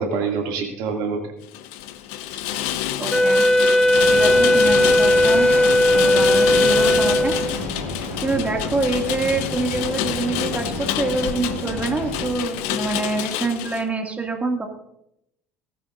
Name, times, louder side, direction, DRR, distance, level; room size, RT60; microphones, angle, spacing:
voice 1, 0.0-1.3 2.3-2.9 8.3-8.5, right 5 dB, 65° right, 2 dB, 2.5 m, -27 dB
Rain, 1.5-13.8, left 12 dB, 65° left, 0.7 m, -28 dB
voice 2, 3.0-3.4 4.1-5.5 5.9-7.4 8.2-14.7, right 3 dB, 20° right, 2 dB, 2.4 m, -26 dB
Wind instrument woodwind instrument, 3.1-7.7, left 1 dB, 5° left, 0.6 m, -17 dB
sound 1, 3.9-12.3, left 1 dB, 90° left, 2.8 m, -31 dB
18.0 x 13.0 x 2.6 m, 0.81 s
figure-of-eight pair, 60°, 8 cm